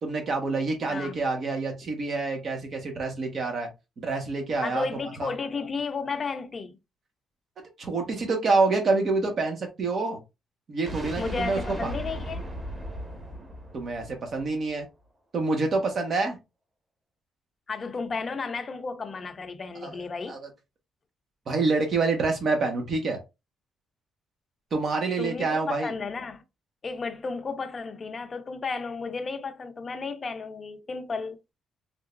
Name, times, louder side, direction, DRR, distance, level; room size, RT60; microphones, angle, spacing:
voice 1, 0.0-3.7 4.0-4.8 5.2-5.3 7.8-10.2 10.7-11.9 13.7-14.9 15.3-16.4 19.8-19.9 20.3-20.5 21.5-23.2 24.7-25.9, right 3 dB, 50° right, 1.5 m, -27 dB
voice 2, 4.6-6.8 11.2-12.4 17.7-20.4 25.2-26.4 26.8-31.4, left 4 dB, 40° left, 0.7 m, -33 dB
sound 1, 10.8-14.8, equal, 25° right, 1.7 m, -37 dB
3.8 x 3.4 x 2.6 m
cardioid pair, 90°, 0 cm